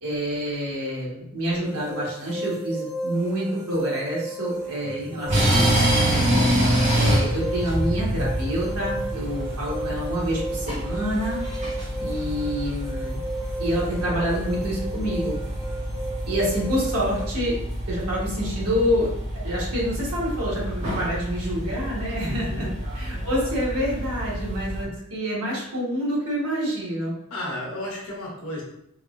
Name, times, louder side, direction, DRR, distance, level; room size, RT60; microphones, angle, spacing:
voice 1, 0.0-6.0 6.9-11.4 12.0-13.2 13.6-15.4 16.3-17.6 17.9-19.1 19.4-22.7 22.9-27.1, equal, 85° right, -5 dB, 1.2 m, -27 dB
sound 1, 1.6-17.3, right 2 dB, 15° right, 0.8 m, -34 dB
voice 2, 4.8-5.3 22.2-22.7 27.3-28.6, left 1 dB, 70° left, -4 dB, 1.0 m, -34 dB
sound 2, 5.2-24.8, equal, 35° right, 1.0 m, -27 dB
3.5 x 2.0 x 2.4 m, 0.74 s
head